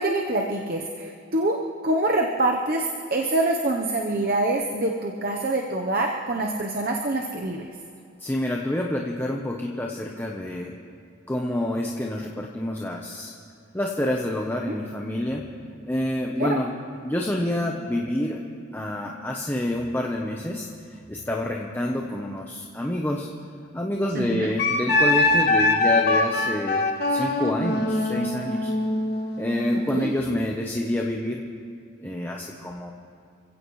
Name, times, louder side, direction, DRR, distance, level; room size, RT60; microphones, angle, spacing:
voice 1, 0.0-7.7 14.7-14.8 16.4-16.6 24.1-24.5 29.9-30.2, right 2 dB, 45° right, 1 dB, 0.9 m, -25 dB
voice 2, 8.2-10.7 11.3-13.3 13.7-15.5 15.9-16.7 17.0-18.4 18.7-20.7 21.1-23.3 23.7-26.8 27.1-28.7 29.4-31.4 32.0-32.9, left 1 dB, 10° left, 0 dB, 0.9 m, -27 dB
Wind instrument woodwind instrument, 24.6-30.0, left 2 dB, 55° left, 1.6 m, -23 dB
28.5 x 16.0 x 3.2 m, 2.5 s
head